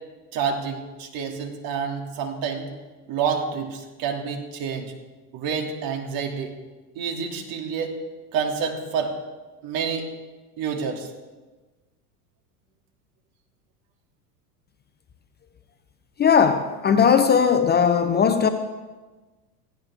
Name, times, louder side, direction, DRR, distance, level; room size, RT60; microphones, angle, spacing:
voice 1, 0.3-2.6 3.1-4.9 5.3-6.5 7.0-7.9 8.3-9.1 9.6-10.1 10.6-11.1, right 6 dB, 50° right, 2 dB, 2.8 m, -28 dB
voice 2, 16.2-18.5, left 7 dB, 20° left, 8 dB, 0.8 m, -18 dB
17.5 x 15.5 x 3.6 m, 1.2 s
supercardioid pair, 115°, 46 cm